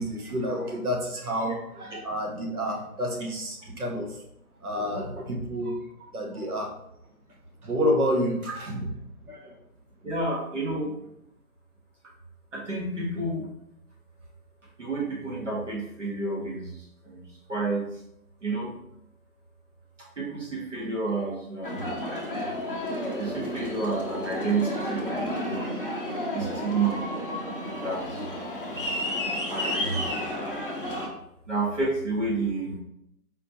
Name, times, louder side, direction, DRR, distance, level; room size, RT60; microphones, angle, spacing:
voice 1, 0.0-4.2 4.6-6.7 7.6-8.9 9.2-9.6, equal, 70° right, 1 dB, 1.0 m, -29 dB
voice 2, 10.0-10.9 12.5-13.5 14.8-17.2 17.5-18.0 18.4-18.7 20.2-21.9 23.2-25.7 26.3-27.1 27.8-28.3 29.4-30.0 31.5-32.8, right 3 dB, 50° right, -4 dB, 1.3 m, -30 dB
Aircraft, 21.6-31.1, left 1 dB, 35° left, 0.6 m, -31 dB
4.3 x 2.7 x 2.8 m, 0.78 s
figure-of-eight pair, 160°, 46 cm